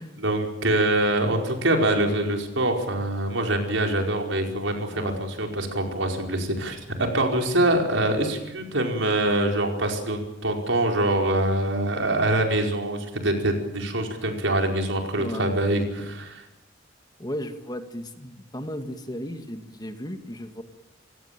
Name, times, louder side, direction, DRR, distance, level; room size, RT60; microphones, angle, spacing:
voice 1, 0.2-16.5, right 1 dB, 80° right, 3 dB, 5.0 m, -24 dB
voice 2, 15.2-15.6 17.2-20.6, equal, 20° left, 7 dB, 1.9 m, -35 dB
28.5 x 16.5 x 9.0 m, 0.93 s
head